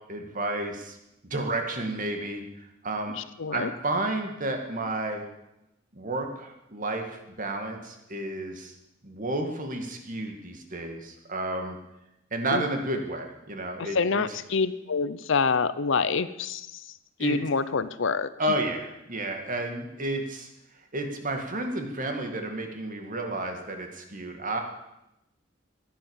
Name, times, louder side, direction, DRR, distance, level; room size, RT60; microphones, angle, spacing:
voice 1, 0.1-1.0 1.3-2.4 2.8-3.2 3.5-5.3 5.9-8.7 9.0-11.8 12.3-14.0 17.2-17.4 18.4-20.5 20.9-24.6, right 2 dB, 40° right, 4 dB, 2.3 m, -31 dB
voice 2, 3.1-3.7 12.5-12.7 13.8-16.9 17.2-18.3, left 4 dB, 65° left, 15 dB, 0.7 m, -27 dB
16.0 x 10.0 x 7.3 m, 0.89 s
head